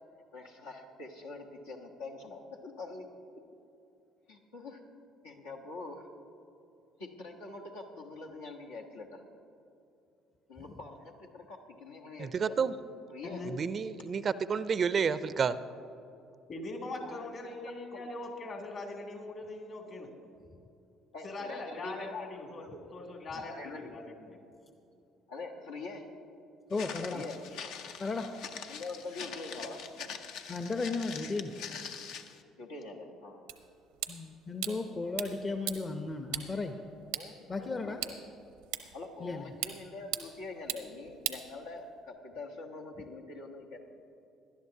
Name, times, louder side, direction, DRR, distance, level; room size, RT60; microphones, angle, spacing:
voice 1, 0.3-3.1 4.3-4.8 5.2-6.1 7.0-9.2 10.5-12.6 13.1-13.4 17.0-17.3 17.9-18.1 21.1-22.8 23.3-24.1 25.3-26.1 27.1-27.4 28.7-29.8 32.6-33.5 34.7-35.0 37.1-38.2 38.9-43.8, left 3 dB, 90° left, -2 dB, 1.1 m, -44 dB
voice 2, 12.2-12.7 13.4-15.6, right 6 dB, 45° right, 15 dB, 0.4 m, -30 dB
voice 3, 13.2-13.5 16.5-20.1 21.2-24.4, left 2 dB, 55° left, 1 dB, 2.6 m, -41 dB
Walk footsteps, 26.7-32.4, left 6 dB, 75° left, 0.6 m, -44 dB
voice 4, 26.7-27.2 28.0-28.3 30.5-31.5 34.1-36.8 37.5-38.0 39.2-39.4, left 3 dB, 35° left, 6 dB, 0.7 m, -35 dB
sound 1, 33.5-42.1, right 12 dB, 85° right, 0.7 m, -42 dB
18.5 x 11.5 x 2.8 m, 2.7 s
hypercardioid pair, 65°, 0 cm